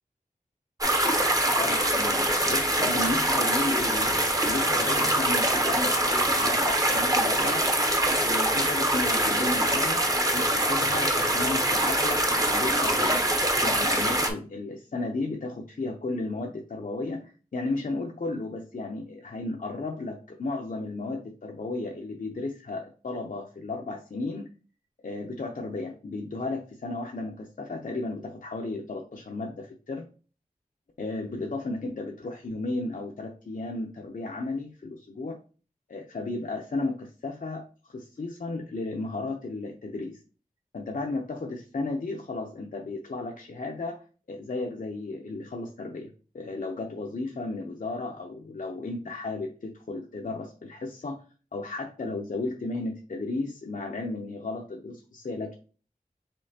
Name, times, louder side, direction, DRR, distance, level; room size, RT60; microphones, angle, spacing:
sound 1, 0.8-14.3, right 1 dB, 25° right, 0.8 m, -24 dB
voice 1, 1.6-7.7 8.2-13.2 13.6-24.5 25.0-30.1 31.0-35.4 35.9-40.2 40.7-44.0 44.3-46.1 46.3-51.2 51.5-55.5, left 2 dB, 65° left, 1 dB, 0.6 m, -34 dB
5.2 x 3.2 x 2.8 m, 0.37 s
wide cardioid pair, 60°, 15 cm